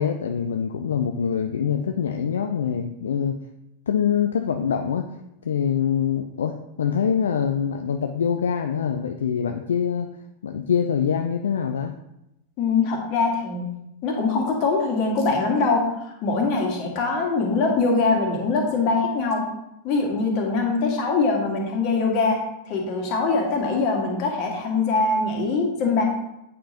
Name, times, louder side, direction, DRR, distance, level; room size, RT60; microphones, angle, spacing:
voice 1, 0.0-3.4 3.9-5.1 5.4-10.1 10.4-11.9, left 7 dB, 65° left, 5 dB, 0.4 m, -24 dB
voice 2, 12.6-13.7 14.0-19.5 19.8-22.4 22.7-26.0, left 3 dB, 40° left, 0 dB, 1.8 m, -23 dB
8.6 x 5.0 x 2.9 m, 0.87 s
figure-of-eight pair, 90°, 0 cm